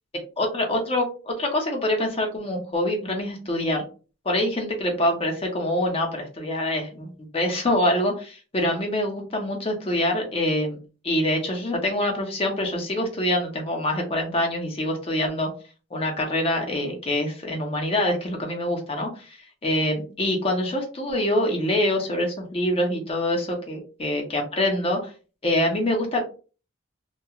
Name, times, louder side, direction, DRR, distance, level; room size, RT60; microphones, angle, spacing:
voice 1, 0.4-3.8 4.2-10.8 11.0-15.5 15.9-19.4 19.6-25.1 25.4-26.2, left 1 dB, 30° left, 2 dB, 0.7 m, -25 dB
2.8 x 2.3 x 2.3 m, 0.36 s
head